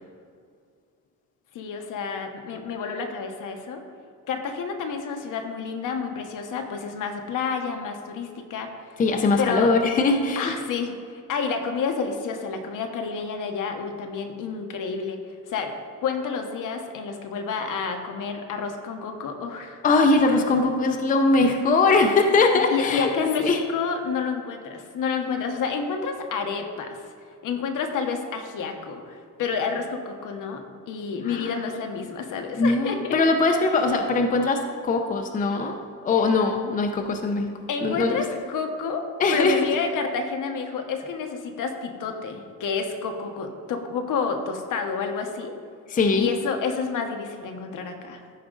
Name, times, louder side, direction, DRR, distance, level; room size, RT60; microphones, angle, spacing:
voice 1, 1.5-3.8 4.3-9.0 9.4-9.7 10.4-15.2 15.5-15.7 16.0-19.8 22.7-27.1 27.4-33.2 37.7-45.5 46.2-48.2, left 5 dB, 75° left, 4 dB, 1.0 m, -29 dB
voice 2, 9.0-10.5 19.8-23.6 31.3-31.5 32.6-35.8 36.0-37.5 37.8-38.1 39.2-39.6 45.9-46.3, left 3 dB, 25° left, 4 dB, 0.5 m, -21 dB
14.0 x 5.0 x 3.9 m, 2.2 s
cardioid pair, 180°, 32 cm